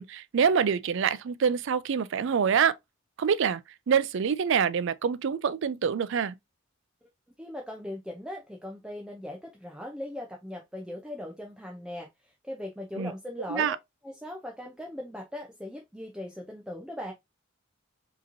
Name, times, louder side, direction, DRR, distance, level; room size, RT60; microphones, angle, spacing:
voice 1, 0.0-2.7 3.2-3.6 3.9-6.3 13.0-13.1 13.5-13.8, right 7 dB, 65° right, 0.4 m, -26 dB
voice 2, 7.4-13.8 14.0-17.1, left 1 dB, 5° right, 0.5 m, -39 dB
5.0 x 2.9 x 2.6 m
head